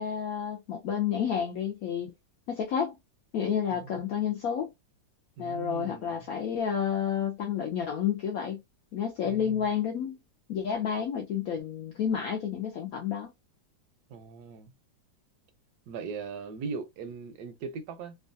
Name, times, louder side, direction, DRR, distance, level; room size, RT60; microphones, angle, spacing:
voice 1, 0.0-2.1 2.5-3.0 3.3-4.7 5.4-8.6 8.9-10.2 10.5-13.3, left 8 dB, 75° left, 0.8 m, -30 dB
voice 2, 3.7-4.1 5.4-6.3 9.2-9.6 14.1-14.7 15.9-18.2, right 5 dB, 70° right, 1.0 m, -39 dB
3.0 x 2.3 x 2.5 m
omnidirectional pair, 2.0 m